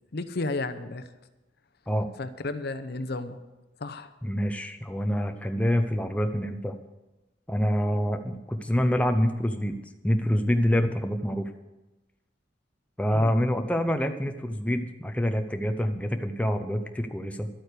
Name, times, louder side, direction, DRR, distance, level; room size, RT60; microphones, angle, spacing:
voice 1, 0.1-1.0 2.2-3.4 3.8-4.1 13.1-13.3, left 2 dB, 60° left, 11 dB, 0.7 m, -32 dB
voice 2, 4.2-6.7 7.5-9.8 10.0-11.5 13.0-17.5, equal, 5° left, 6 dB, 0.6 m, -26 dB
12.0 x 9.0 x 6.7 m, 1.0 s
head